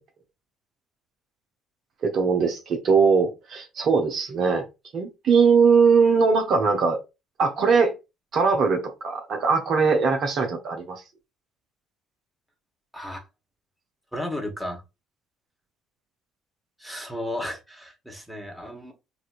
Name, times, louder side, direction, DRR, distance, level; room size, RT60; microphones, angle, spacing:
voice 1, 2.0-4.6 4.9-7.0 7.4-7.9 8.3-11.0, right 5 dB, 50° right, 0.7 m, -20 dB
voice 2, 12.9-13.2 14.1-14.8 16.8-18.9, left 1 dB, 5° right, 1.3 m, -34 dB
4.1 x 2.5 x 2.5 m
figure-of-eight pair, 50°, 0 cm